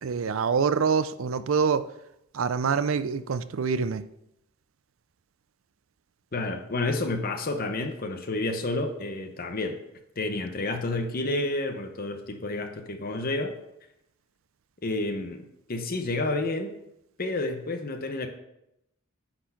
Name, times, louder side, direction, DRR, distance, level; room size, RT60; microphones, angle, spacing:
voice 1, 0.0-1.9 2.3-4.0, right 5 dB, 70° right, 14 dB, 0.5 m, -25 dB
voice 2, 6.3-9.8 10.2-13.5 14.8-15.4 15.7-16.7 17.2-18.3, left 2 dB, 45° left, 6 dB, 0.9 m, -30 dB
9.6 x 4.4 x 5.8 m, 0.83 s
head